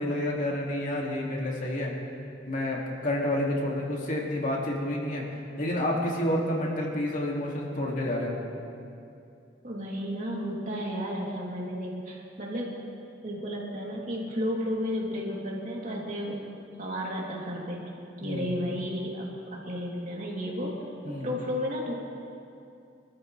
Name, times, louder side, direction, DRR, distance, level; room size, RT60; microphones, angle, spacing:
voice 1, 0.0-1.9 2.5-5.2 5.6-8.4 18.2-18.5 21.0-21.3, left 1 dB, 45° left, -2 dB, 2.4 m, -29 dB
voice 2, 9.6-12.7 13.2-16.5 16.8-17.8 18.2-20.7 21.0-21.9, equal, 45° right, -4 dB, 3.1 m, -33 dB
26.0 x 13.5 x 3.3 m, 2.5 s
head